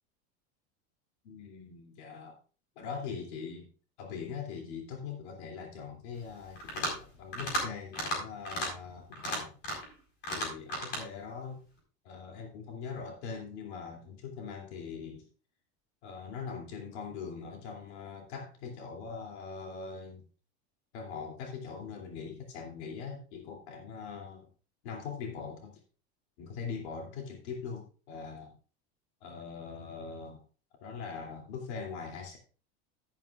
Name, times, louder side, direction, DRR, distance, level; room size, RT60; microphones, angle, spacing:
voice 1, 1.2-2.4 2.8-3.7 4.0-9.5 10.3-11.6 12.0-15.3 16.0-20.2 20.9-24.5 24.8-25.8 26.4-28.6 29.2-30.4 30.8-32.4, left 5 dB, 80° left, 1 dB, 2.8 m, -42 dB
sound 1, 6.6-7.0 7.3-7.6 7.9-8.2 8.4-8.7 9.1-9.9 10.2-11.0, equal, 30° left, 4.4 m, -33 dB
12.0 x 11.0 x 2.4 m, 0.37 s
supercardioid pair, 180°, 32 cm